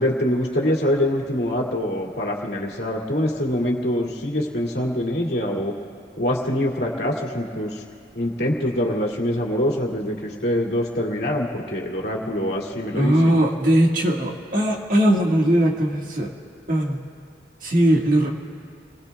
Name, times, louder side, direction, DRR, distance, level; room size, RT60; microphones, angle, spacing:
voice 1, 0.0-5.7 6.2-7.8 8.1-13.3, left 1 dB, 65° left, -2 dB, 2.4 m, -24 dB
voice 2, 13.0-16.3 16.7-17.0 17.6-18.3, right 1 dB, 50° right, -1 dB, 1.8 m, -19 dB
29.5 x 21.0 x 2.3 m, 2.5 s
head